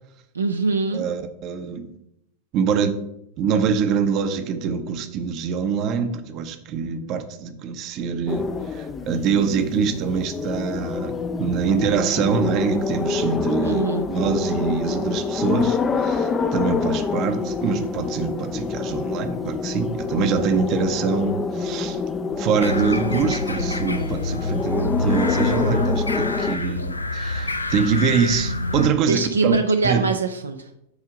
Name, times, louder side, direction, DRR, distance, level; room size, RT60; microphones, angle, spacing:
voice 1, 0.3-1.0 13.6-14.1 29.1-30.8, right 4 dB, 75° right, 6 dB, 0.4 m, -23 dB
voice 2, 0.9-1.9 2.5-3.0 3.4-13.8 14.1-22.0 22.4-29.6 29.8-30.1, right 6 dB, 40° right, 8 dB, 0.7 m, -24 dB
sound 1, 8.3-26.6, left 5 dB, 20° left, 0.4 m, -26 dB
sound 2, 22.6-28.9, left 1 dB, 80° left, 0.4 m, -27 dB
8.0 x 2.7 x 4.9 m, 0.81 s
figure-of-eight pair, 90°, 0 cm